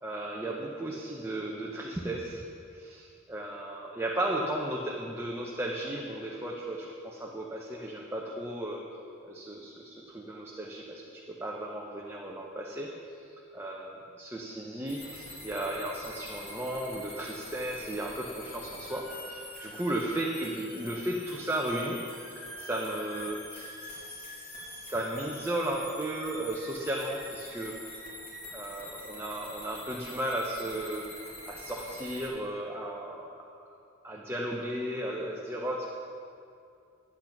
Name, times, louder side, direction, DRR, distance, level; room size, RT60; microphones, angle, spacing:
voice 1, 0.0-2.4 2.7-8.8 9.2-11.0 11.3-13.2 13.5-22.0 22.6-27.7 28.5-31.0 31.5-33.4 34.0-35.8, right 1 dB, 10° right, -3 dB, 0.8 m, -35 dB
sound 1, 14.9-32.3, left 1 dB, 40° left, 2.4 m, -45 dB
10.5 x 8.6 x 5.9 m, 2.5 s
head